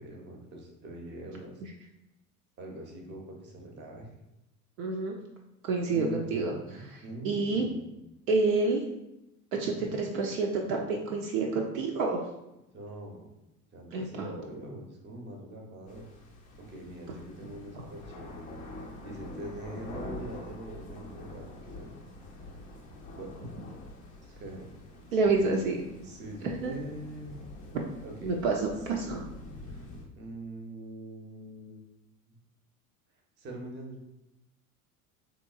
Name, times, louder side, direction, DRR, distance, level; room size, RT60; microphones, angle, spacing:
voice 1, 0.0-1.6 2.6-4.1 5.8-7.9 12.7-13.3 13.7-16.1 16.6-18.4 19.0-22.0 23.1-23.3 24.2-24.6 25.2-25.5 25.9-27.4 28.0-28.3 30.2-31.8 32.3-32.4 33.4-34.0, right 1 dB, 25° right, 1 dB, 0.8 m, -43 dB
voice 2, 4.8-5.2 5.6-6.6 7.2-7.7 8.3-8.8 9.5-12.2 13.9-14.3 25.1-25.8 26.4-26.7 28.2-29.2, right 3 dB, 60° right, 0 dB, 0.6 m, -28 dB
sound 1, 15.9-30.0, left 2 dB, 20° left, 0.4 m, -46 dB
3.6 x 2.9 x 2.3 m, 0.90 s
figure-of-eight pair, 75°, 46 cm